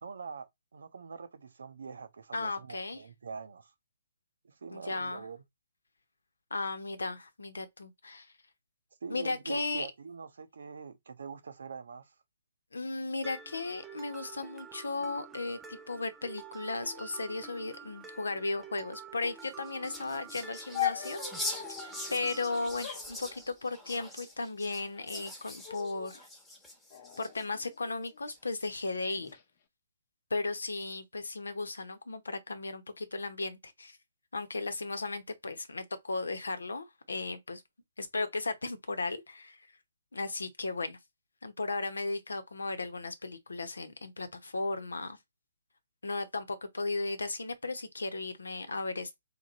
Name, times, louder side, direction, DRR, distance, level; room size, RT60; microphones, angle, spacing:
voice 1, 0.0-3.7 4.4-5.4 9.0-12.1, right 5 dB, 65° right, 0.8 m, -44 dB
voice 2, 2.3-3.0 4.7-5.3 6.5-8.3 9.1-9.9 12.7-21.2 21.8-26.3 27.2-29.3 30.3-34.0 34.3-37.6 38.0-39.6 40.1-41.0 41.4-45.2 46.0-49.1, left 3 dB, 70° left, 1.0 m, -35 dB
Mallet percussion, 13.2-22.8, right 6 dB, 10° right, 0.6 m, -49 dB
sound 1, 19.3-27.7 28.3-28.9, left 1 dB, 5° left, 1.1 m, -43 dB
sound 2, 20.7-22.0 22.8-24.0 24.8-25.3 25.6-26.2 26.9-28.2 29.0-29.4, left 12 dB, 40° left, 0.8 m, -40 dB
3.3 x 3.1 x 4.1 m
figure-of-eight pair, 130°, 0 cm